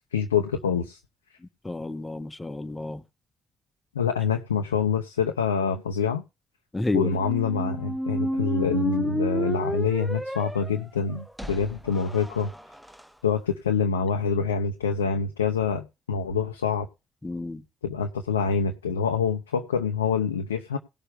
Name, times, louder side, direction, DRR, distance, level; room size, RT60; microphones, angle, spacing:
voice 1, 0.1-1.0 3.9-6.2 6.9-12.5 13.2-16.9 17.8-20.8, left 6 dB, 80° left, 0.9 m, -26 dB
voice 2, 1.6-3.0 6.7-7.1 17.2-17.6, left 2 dB, 15° left, 1.7 m, -30 dB
sound 1, 7.1-13.0, equal, 5° right, 1.0 m, -31 dB
18.5 x 6.7 x 3.4 m
figure-of-eight pair, 40°, 0 cm